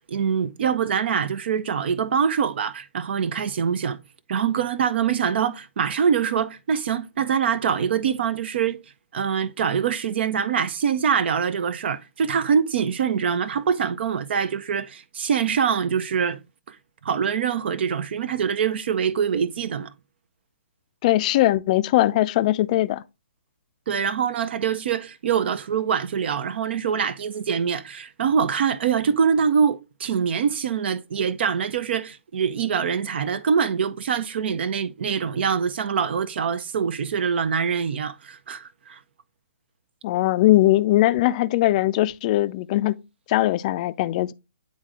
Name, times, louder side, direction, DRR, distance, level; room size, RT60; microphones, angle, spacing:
voice 1, 0.0-4.0 4.3-8.8 9.1-16.4 16.7-16.8 17.0-19.9 23.9-39.0, right 7 dB, 50° right, 0.6 m, -24 dB
voice 2, 21.0-23.0 40.0-43.0 43.3-44.3, left 15 dB, 30° left, 0.4 m, -20 dB
9.5 x 3.9 x 3.6 m
figure-of-eight pair, 130°, 8 cm